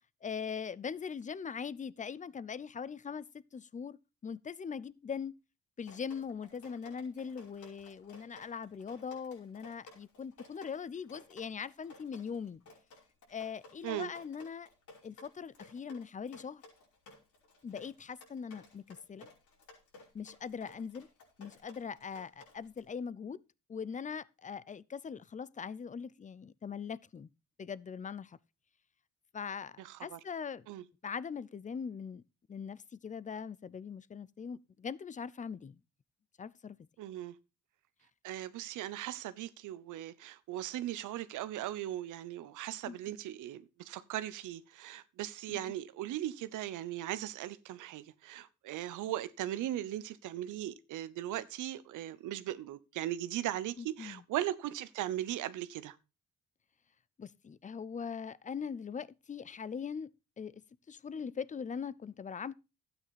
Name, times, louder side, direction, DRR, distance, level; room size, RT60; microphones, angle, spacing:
voice 1, 0.2-3.3 3.5-4.0 4.2-5.3 5.8-12.6 13.3-14.7 15.0-16.6 17.6-19.3 20.1-21.1 21.4-23.4 23.7-27.3 27.6-28.4 29.3-30.7 31.0-32.2 32.5-35.8 36.4-36.8 42.9-43.2 45.5-45.6 53.8-54.2 57.2-60.1 60.4-60.6 60.9-62.5, left 6 dB, 25° left, 0.5 m, -41 dB
Drip, 5.8-22.8, left 3 dB, 70° left, 5.3 m, -57 dB
voice 2, 29.8-30.2 30.7-30.8 37.0-37.3 38.2-56.0, right 13 dB, 85° right, 0.9 m, -38 dB
12.5 x 8.9 x 4.2 m
cardioid pair, 90°, 30 cm